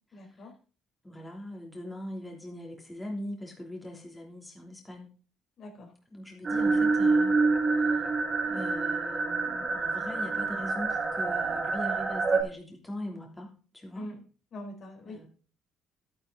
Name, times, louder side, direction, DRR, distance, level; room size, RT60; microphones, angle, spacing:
voice 1, 0.1-0.5 5.6-5.9 13.9-14.2 14.5-15.2, left 1 dB, 55° left, 3 dB, 4.2 m, -43 dB
voice 2, 1.0-5.1 6.1-7.4 7.9-8.1 8.5-14.1 15.1-15.3, left 1 dB, 10° left, 0 dB, 3.1 m, -41 dB
sound 1, 6.4-12.4, right 3 dB, 35° right, 3.2 m, -27 dB
11.0 x 10.0 x 3.9 m, 0.38 s
cardioid pair, 95°, 0 cm